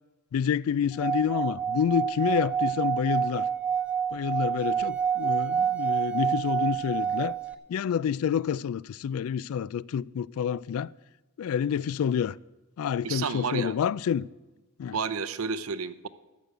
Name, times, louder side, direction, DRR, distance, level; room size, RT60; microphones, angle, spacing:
voice 1, 0.3-3.5 4.1-7.4 7.7-10.9 11.4-12.4 12.8-14.3 14.8-15.0, left 8 dB, 75° left, 0.3 m, -28 dB
Singing / Glass, 0.9-7.5, right 7 dB, 5° right, 0.6 m, -28 dB
voice 2, 13.0-13.7 14.9-16.1, right 5 dB, 75° right, 0.6 m, -31 dB
13.5 x 6.8 x 7.9 m
head